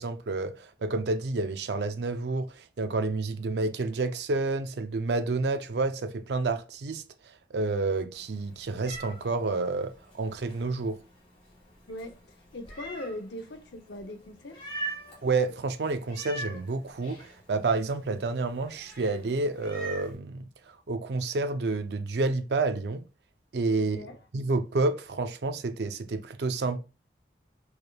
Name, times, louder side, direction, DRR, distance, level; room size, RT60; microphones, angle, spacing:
voice 1, 0.0-7.0 7.5-11.0 15.2-20.4 20.9-23.0 23.5-24.0 24.3-26.8, right 3 dB, 75° right, 0.5 m, -29 dB
Meow, 8.1-20.1, right 2 dB, 30° left, 1.6 m, -44 dB
voice 2, 11.9-14.6 23.8-24.2, left 1 dB, 85° left, 0.7 m, -40 dB
4.6 x 3.2 x 2.3 m
head